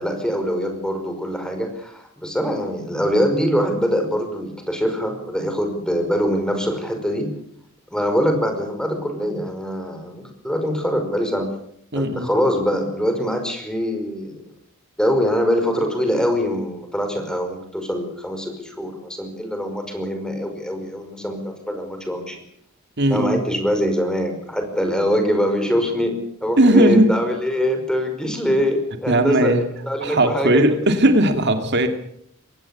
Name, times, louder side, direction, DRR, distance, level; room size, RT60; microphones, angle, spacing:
voice 1, 0.0-7.3 7.9-11.5 11.9-14.4 15.0-22.4 23.1-29.5 29.8-30.8, equal, 5° left, 5 dB, 5.3 m, -23 dB
voice 2, 11.9-12.3 23.0-23.4 26.6-27.1 29.1-29.7 30.0-31.9, right 1 dB, 55° right, 7 dB, 2.4 m, -17 dB
24.0 x 18.5 x 8.5 m, 0.68 s
head